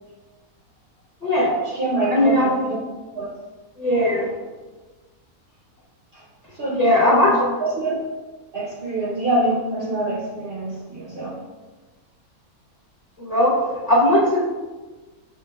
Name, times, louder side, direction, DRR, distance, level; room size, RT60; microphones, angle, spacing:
voice 1, 1.2-1.6 2.1-2.6 3.8-4.3 6.7-7.5 13.2-13.5 13.8-14.4, left 1 dB, 30° left, -7 dB, 1.1 m, -18 dB
voice 2, 1.7-2.8 3.1-3.3 6.1-6.2 6.5-7.3 7.6-8.0 8.5-11.4, right 2 dB, 50° right, -6 dB, 0.8 m, -25 dB
7.0 x 3.0 x 2.3 m, 1.3 s
omnidirectional pair, 1.6 m